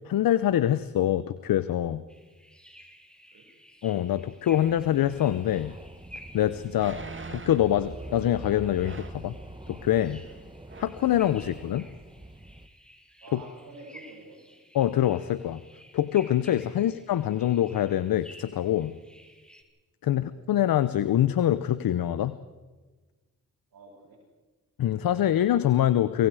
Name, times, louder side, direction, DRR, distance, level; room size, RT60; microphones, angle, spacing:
voice 1, 0.1-2.0 3.8-5.7 6.3-7.0 7.3-9.4 9.7-10.2 10.8-11.9 13.3-13.4 14.7-15.6 15.9-18.9 20.0-22.4 24.8-26.3, left 11 dB, 80° left, 15 dB, 0.8 m, -25 dB
sound 1, 2.1-19.6, equal, 5° left, 4.0 m, -53 dB
sound 2, 4.5-12.7, right 2 dB, 15° right, 1.4 m, -44 dB
sound 3, 5.7-5.8 6.7-7.7 8.8-9.3 10.2-10.4 10.7-11.0 11.5-11.6, right 4 dB, 35° right, 1.8 m, -43 dB
voice 2, 13.2-14.4 16.8-16.9 20.0-20.2 23.7-24.2, right 2 dB, 85° right, -5 dB, 6.3 m, -48 dB
25.5 x 24.5 x 4.9 m, 1.3 s
cardioid pair, 55°, 34 cm